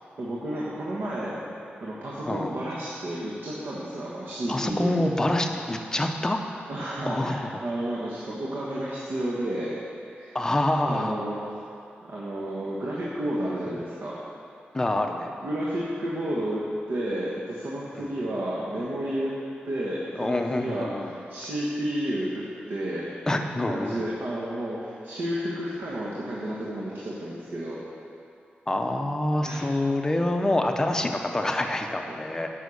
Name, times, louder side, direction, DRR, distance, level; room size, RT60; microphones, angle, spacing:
voice 1, 0.2-1.4 1.8-5.1 6.7-9.8 10.1-10.4 10.8-11.4 12.1-14.2 15.4-19.3 19.6-23.1 23.7-27.8 29.4-29.7 32.1-32.2, right 1 dB, 60° right, -6 dB, 1.4 m, -31 dB
voice 2, 4.5-6.4 7.1-7.6 10.3-11.1 14.7-15.3 17.9-18.1 20.2-21.1 23.3-24.0 28.7-32.5, left 1 dB, 15° left, 4 dB, 0.6 m, -26 dB
10.5 x 5.6 x 6.4 m, 2.6 s
wide cardioid pair, 170°, 4 cm